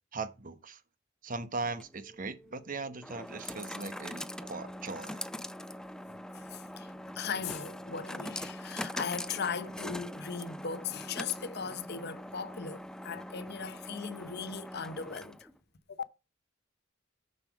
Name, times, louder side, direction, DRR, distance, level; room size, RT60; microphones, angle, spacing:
voice 1, 0.1-0.8 1.2-5.3, right 3 dB, 45° right, 1.0 m, -39 dB
sound 1, 1.6-15.6, left 1 dB, 5° left, 0.4 m, -43 dB
voice 2, 6.3-15.5 15.9-16.0, left 6 dB, 55° left, 0.8 m, -38 dB
7.0 x 6.6 x 4.7 m
head